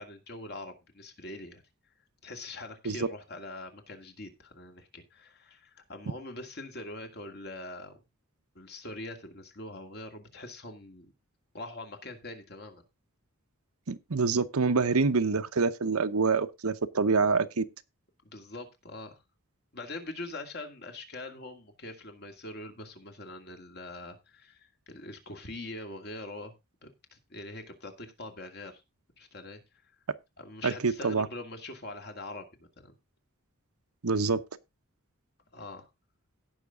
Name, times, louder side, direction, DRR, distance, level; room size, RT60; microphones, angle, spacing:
voice 1, 0.0-1.6 2.2-8.0 8.5-11.1 11.5-12.8 18.2-19.2 19.7-26.5 26.8-28.8 29.2-29.6 30.4-33.0 35.5-35.9, left 2 dB, 50° left, 2.3 m, -43 dB
voice 2, 13.9-17.6 30.6-31.3 34.0-34.4, right 4 dB, 85° right, 0.9 m, -26 dB
17.0 x 5.9 x 3.7 m
head